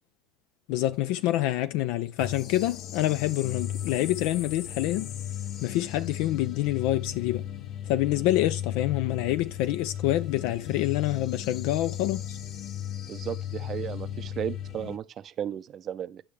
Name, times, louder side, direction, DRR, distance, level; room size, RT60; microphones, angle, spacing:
voice 1, 0.7-5.1 5.6-7.5 7.8-12.4, left 15 dB, 70° left, 0.4 m, -27 dB
sound 1, 2.2-15.0, left 10 dB, 55° left, 0.8 m, -36 dB
voice 2, 13.1-16.2, right 10 dB, 45° right, 0.5 m, -35 dB
10.0 x 5.8 x 3.3 m
supercardioid pair, 85°, 0 cm